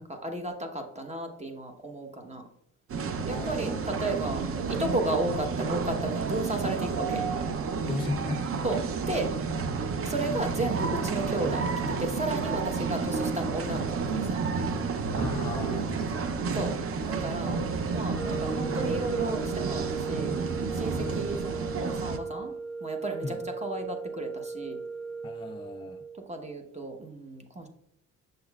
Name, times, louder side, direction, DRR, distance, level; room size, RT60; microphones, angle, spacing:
voice 1, 0.0-2.5 3.3-7.2 8.6-9.3 10.0-14.4 16.5-16.8 17.1-20.4 20.7-22.5 22.8-24.8 26.3-27.7, right 2 dB, 20° right, 4 dB, 1.0 m, -33 dB
sound 1, 2.9-22.2, right 5 dB, 50° right, 0.7 m, -31 dB
voice 2, 3.3-4.0 7.8-8.7 15.2-16.3 21.0-21.3 23.2-23.4 25.2-26.0, left 3 dB, 15° left, 5 dB, 0.3 m, -36 dB
sound 2, 18.0-26.2, right 4 dB, 80° right, 1.7 m, -37 dB
6.5 x 6.2 x 2.3 m, 0.76 s
cardioid pair, 90°, 30 cm